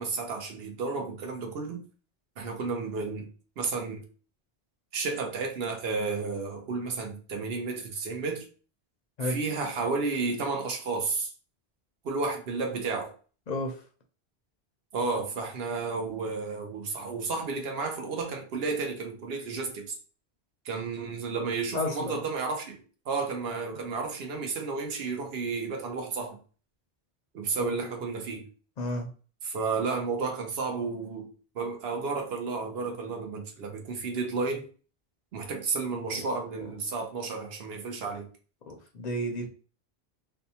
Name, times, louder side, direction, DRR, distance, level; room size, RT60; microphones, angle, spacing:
voice 1, 0.0-1.8 2.4-3.3 3.6-4.0 4.9-8.5 9.2-11.3 12.0-13.1 14.9-20.0 20.6-26.4 27.3-28.5 29.4-31.3 31.5-34.7 35.3-38.3, right 4 dB, 70° right, 0.9 m, -32 dB
voice 2, 13.5-13.8 21.7-22.2 27.6-27.7 28.8-29.1 36.1-36.2 36.6-36.7 38.7-39.5, left 1 dB, 55° left, 0.5 m, -32 dB
2.6 x 2.2 x 2.7 m
omnidirectional pair, 1.1 m